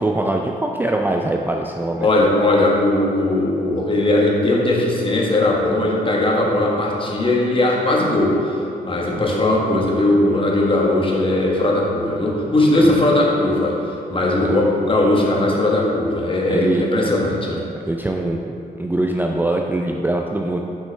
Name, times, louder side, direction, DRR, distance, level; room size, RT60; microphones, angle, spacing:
voice 1, 0.0-2.1 9.1-9.3 12.3-12.4 12.8-12.9 16.5-16.8 17.9-20.6, right 2 dB, 10° right, 1 dB, 0.4 m, -22 dB
voice 2, 2.0-8.5 8.8-13.8 14.1-17.6, left 2 dB, 30° left, -2 dB, 1.3 m, -18 dB
6.2 x 5.2 x 3.3 m, 2.7 s
cardioid pair, 60°, 16 cm